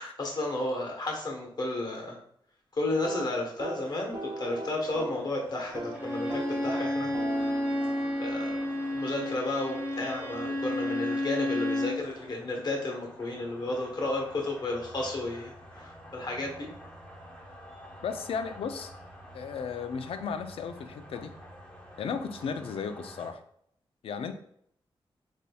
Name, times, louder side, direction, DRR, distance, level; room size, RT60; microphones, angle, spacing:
voice 1, 0.0-2.2 2.7-7.1 7.4-7.5 8.2-16.7, left 2 dB, 45° left, 1 dB, 1.0 m, -33 dB
sound 1, 2.9-5.3 5.6-6.0 6.3-10.1, right 2 dB, 45° right, 0.6 m, -41 dB
sound 2, 3.7-23.3, equal, 10° left, 0.9 m, -49 dB
Bowed string instrument, 5.9-12.0, left 1 dB, 20° right, 1.1 m, -31 dB
voice 2, 18.0-18.9 19.3-21.3 22.0-23.4 24.0-24.3, left 6 dB, 85° left, 9 dB, 0.4 m, -35 dB
4.0 x 3.4 x 2.2 m, 0.68 s
wide cardioid pair, 100°, 9 cm